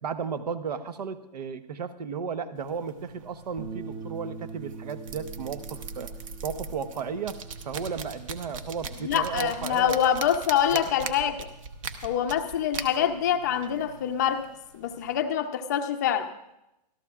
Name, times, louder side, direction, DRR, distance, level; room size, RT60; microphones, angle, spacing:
voice 1, 0.0-6.2 6.4-10.0, right 6 dB, 70° right, 12 dB, 1.0 m, -34 dB
sound 1, 2.6-15.2, right 5 dB, 50° right, 1.1 m, -41 dB
Bass guitar, 3.6-9.8, right 4 dB, 15° right, 0.7 m, -43 dB
voice 2, 9.0-11.5 12.0-14.5 14.7-16.3, left 9 dB, 25° left, 6 dB, 0.5 m, -25 dB
26.0 x 13.5 x 2.4 m, 0.87 s
hypercardioid pair, 175°, 21 cm